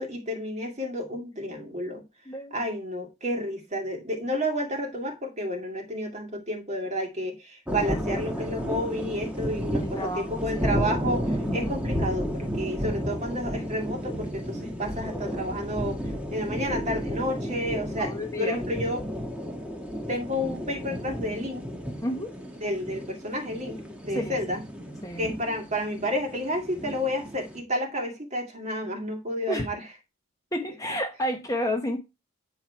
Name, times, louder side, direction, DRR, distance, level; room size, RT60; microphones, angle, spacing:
voice 1, 0.0-2.0 2.5-16.0 16.3-19.0 20.1-21.6 22.6-23.8 24.0-24.6 25.2-29.8, equal, 30° right, 2.0 m, -31 dB
sound 1, 7.7-27.6, equal, 5° right, 1.4 m, -32 dB
voice 2, 9.8-10.6 11.5-11.7 18.0-18.6 22.0-22.3 24.1-24.7 25.0-25.3 29.5-29.7 30.5-32.0, equal, 15° left, 1.0 m, -31 dB
9.1 x 4.7 x 4.4 m
head